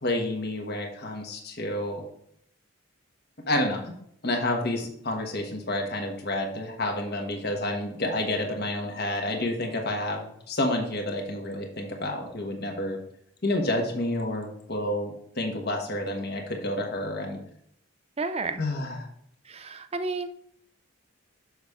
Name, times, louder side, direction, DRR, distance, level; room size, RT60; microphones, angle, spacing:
voice 1, 0.0-2.0 3.5-3.9 4.2-13.0 13.4-17.4 18.6-19.1, left 1 dB, 45° left, 2 dB, 1.3 m, -29 dB
voice 2, 18.2-18.6 19.5-20.3, right 3 dB, 30° right, 10 dB, 0.5 m, -31 dB
6.6 x 6.2 x 3.6 m, 0.69 s
head